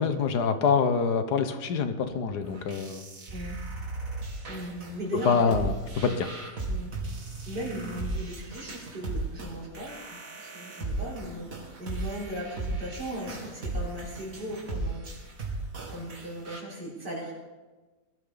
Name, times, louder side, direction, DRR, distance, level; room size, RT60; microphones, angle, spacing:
voice 1, 0.0-3.0 5.2-6.3, left 5 dB, 70° left, 9 dB, 1.6 m, -25 dB
sound 1, 2.4-16.6, right 2 dB, 55° right, 2.6 m, -36 dB
voice 2, 4.5-5.6 6.7-7.0 7.5-15.0 15.9-17.3, right 1 dB, 75° right, -4 dB, 4.7 m, -37 dB
20.5 x 12.5 x 4.0 m, 1.2 s
omnidirectional pair, 1.8 m